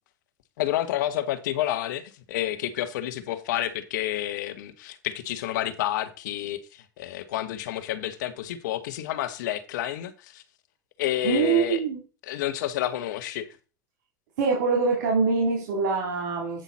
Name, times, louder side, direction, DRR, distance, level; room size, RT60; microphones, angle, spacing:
voice 1, 0.6-10.4 11.0-11.8 12.2-13.5, left 12 dB, 80° left, 1.1 m, -29 dB
voice 2, 11.2-12.0 14.4-16.6, right 5 dB, 80° right, 3.3 m, -24 dB
8.9 x 5.7 x 4.2 m
supercardioid pair, 105°, 10 cm